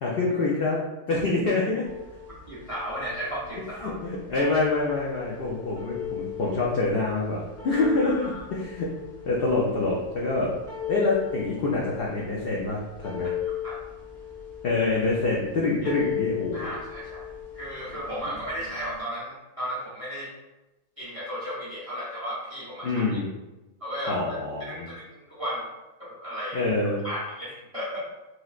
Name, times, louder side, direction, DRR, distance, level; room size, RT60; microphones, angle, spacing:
voice 1, 0.0-0.8 1.1-1.8 3.8-8.9 9.2-10.5 10.9-13.3 14.6-16.7 22.8-23.3 24.1-24.9 26.5-27.0, left 3 dB, 80° left, -3 dB, 0.5 m, -26 dB
sound 1, 1.8-19.0, left 9 dB, 50° left, 1.0 m, -37 dB
voice 2, 2.5-3.9 7.7-8.4 13.2-13.3 13.6-13.8 15.8-15.9 16.5-17.2 17.5-20.3 21.0-23.0 23.8-25.7 26.0-26.7 27.0-28.0, equal, 40° right, -8 dB, 0.5 m, -34 dB
3.1 x 2.9 x 2.3 m, 1.1 s
omnidirectional pair, 1.6 m